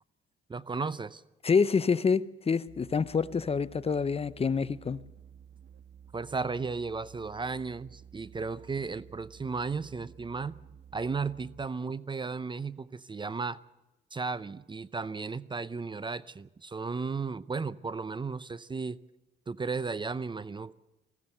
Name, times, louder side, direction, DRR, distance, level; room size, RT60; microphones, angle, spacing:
voice 1, 0.5-1.2 6.1-10.6 10.9-13.6 14.1-19.0 19.5-20.7, right 4 dB, 25° right, 0.6 m, -34 dB
voice 2, 1.4-5.0, left 5 dB, 30° left, 0.7 m, -27 dB
sound 1, 2.7-11.8, right 8 dB, 60° right, 1.8 m, -53 dB
21.0 x 16.0 x 7.9 m
cardioid pair, 90°, 20 cm